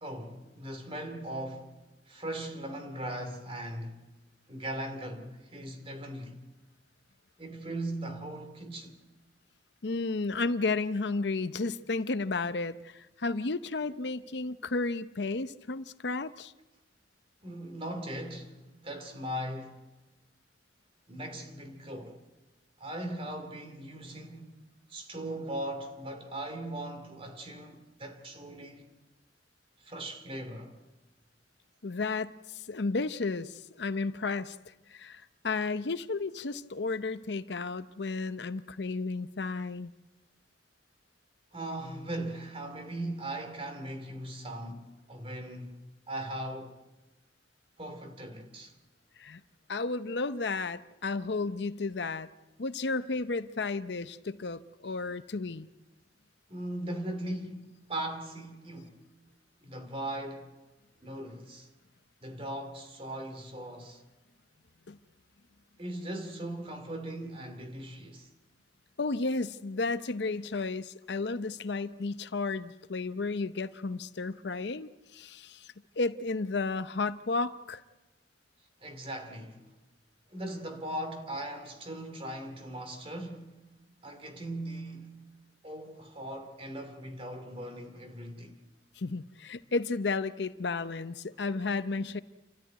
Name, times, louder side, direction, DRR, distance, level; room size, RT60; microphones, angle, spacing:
voice 1, 0.0-1.8 2.1-4.1 4.5-6.4 7.4-9.0 17.4-19.8 21.1-22.2 22.8-24.6 24.9-28.9 29.8-30.7 41.5-46.8 47.8-48.7 56.5-59.0 59.6-60.5 61.0-61.7 62.2-64.0 65.8-68.3 78.8-79.7 80.3-83.6 84.0-85.2 85.6-88.6, right 1 dB, 30° right, 2.6 m, -39 dB
voice 2, 9.8-16.5 31.8-34.6 34.9-39.9 49.2-49.4 49.7-52.3 52.6-55.7 64.9-65.0 69.0-77.8 89.0-92.2, left 3 dB, 65° left, 0.7 m, -33 dB
29.0 x 13.5 x 9.4 m
head